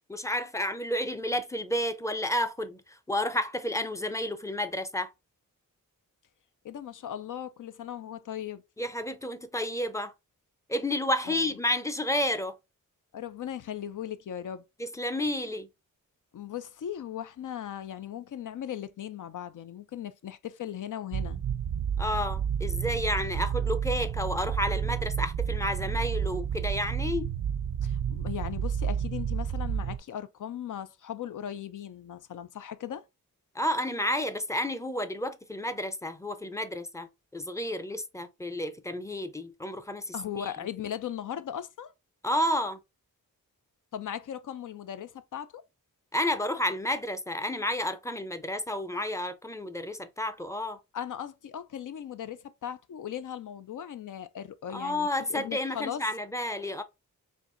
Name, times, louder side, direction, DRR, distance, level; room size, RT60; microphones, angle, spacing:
voice 1, 0.1-5.1 8.8-10.1 10.7-12.6 14.8-15.7 22.0-27.3 33.5-40.5 42.2-42.8 46.1-50.8 54.7-56.8, left 1 dB, 10° left, 0.5 m, -31 dB
voice 2, 6.6-8.6 11.3-11.5 13.1-14.6 16.3-21.4 27.8-33.0 40.1-41.9 43.9-45.6 50.9-56.1, left 10 dB, 65° left, 0.5 m, -38 dB
sound 1, 21.1-30.0, right 8 dB, 70° right, 0.6 m, -30 dB
4.5 x 2.7 x 2.5 m
cardioid pair, 75°, 34 cm